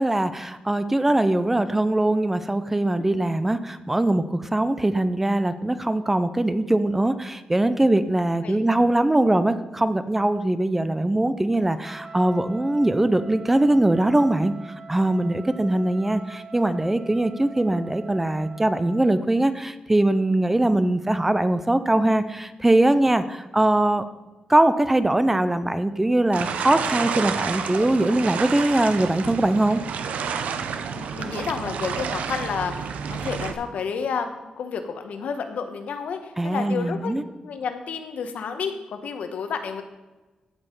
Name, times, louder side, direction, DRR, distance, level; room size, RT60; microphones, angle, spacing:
voice 1, 0.0-14.5 14.9-24.1 24.5-29.8 36.4-37.2, right 1 dB, 10° right, 12 dB, 0.5 m, -21 dB
Trumpet, 11.8-19.1, right 4 dB, 40° right, 1.3 m, -43 dB
sound 1, 26.3-33.5, right 6 dB, 85° right, 0.7 m, -30 dB
voice 2, 30.8-34.3 34.6-37.1 37.4-39.8, left 6 dB, 80° left, 7 dB, 1.2 m, -31 dB
15.5 x 5.5 x 5.4 m, 1.2 s
wide cardioid pair, 155°, 2 cm